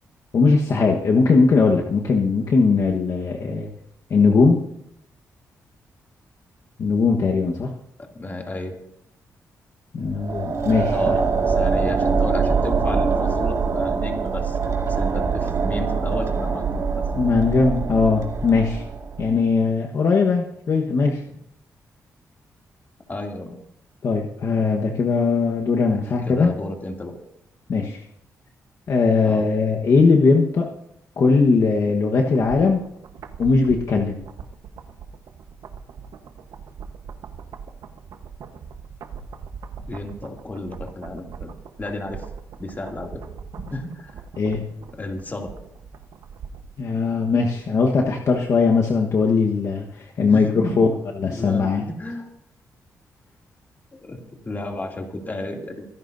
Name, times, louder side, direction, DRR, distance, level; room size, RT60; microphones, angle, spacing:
voice 1, 0.3-3.7 4.1-4.6 6.8-7.7 9.9-11.2 17.1-18.8 19.2-21.2 24.0-26.5 27.7-28.0 28.9-30.7 31.2-32.8 33.4-34.2 44.4-44.6 46.8-50.9 51.2-51.9, left 4 dB, 60° left, 1 dB, 1.3 m, -19 dB
voice 2, 8.0-8.7 10.9-17.1 23.1-23.6 25.9-27.2 29.2-29.5 39.8-41.5 41.8-42.3 42.6-43.2 43.6-44.2 44.9-45.5 50.2-50.8 51.2-52.3 53.9-55.9, left 2 dB, 30° left, 1 dB, 2.7 m, -32 dB
sound 1, 10.0-19.4, right 5 dB, 55° right, 2.1 m, -23 dB
sound 2, 32.1-46.8 47.1-47.2, right 6 dB, 80° right, 1.2 m, -40 dB
24.0 x 11.5 x 2.7 m, 0.77 s
cardioid pair, 95°, 6 cm